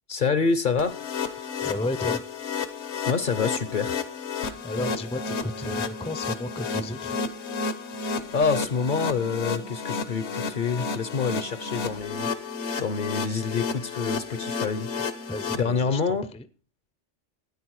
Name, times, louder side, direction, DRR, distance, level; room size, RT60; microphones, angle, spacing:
voice 1, 0.1-1.0 3.1-4.0 8.3-12.5 12.8-14.9 15.5-16.3, left 5 dB, 50° left, 0.8 m, -27 dB
sound 1, 0.8-15.6, left 5 dB, 70° left, 1.2 m, -32 dB
voice 2, 1.4-2.2 4.6-7.2 15.3-16.5, left 2 dB, 5° left, 0.5 m, -33 dB
13.0 x 9.7 x 4.7 m
omnidirectional pair, 1.2 m